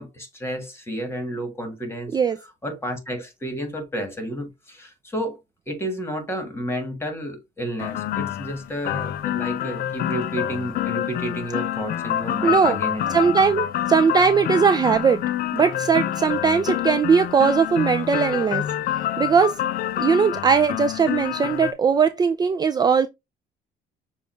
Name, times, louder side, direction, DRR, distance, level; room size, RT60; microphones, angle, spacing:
voice 1, 0.0-2.2 2.6-5.4 5.7-13.4, equal, 15° left, 1.6 m, -31 dB
sound 1, 7.8-21.7, left 12 dB, 60° left, 0.4 m, -27 dB
voice 2, 12.4-12.8 13.1-15.2 15.5-18.6 19.2-19.5 20.0-23.1, right 6 dB, 25° right, 0.4 m, -19 dB
6.9 x 2.4 x 3.1 m
cardioid pair, 110°, 17 cm